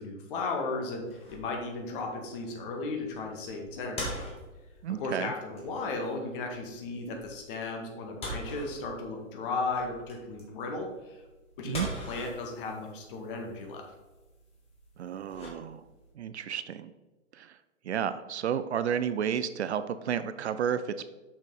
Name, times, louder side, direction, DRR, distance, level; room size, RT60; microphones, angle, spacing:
voice 1, 0.0-4.1 4.9-11.2 11.6-13.8, left 3 dB, 40° left, 2 dB, 1.8 m, -35 dB
sound 1, 1.0-16.1, equal, 15° left, 1.7 m, -44 dB
voice 2, 4.8-5.3 11.6-11.9 15.0-15.8 16.2-16.9 17.3-17.6 17.8-21.1, right 8 dB, 55° right, 12 dB, 0.5 m, -32 dB
6.4 x 6.0 x 4.0 m, 1.2 s
hypercardioid pair, 125°, 40 cm